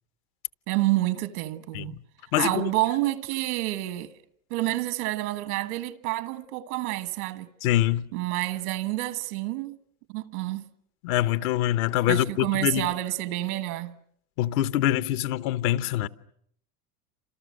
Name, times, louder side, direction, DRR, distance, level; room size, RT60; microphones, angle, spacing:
voice 1, 0.7-2.0 2.4-4.1 4.5-7.5 8.1-9.8 10.1-10.6 12.1-13.9, right 17 dB, 85° right, 1.5 m, -28 dB
voice 2, 2.3-2.7 7.6-8.1 11.0-12.9 14.4-16.1, left 13 dB, 80° left, 1.0 m, -24 dB
29.0 x 27.0 x 6.5 m
supercardioid pair, 130°, 43 cm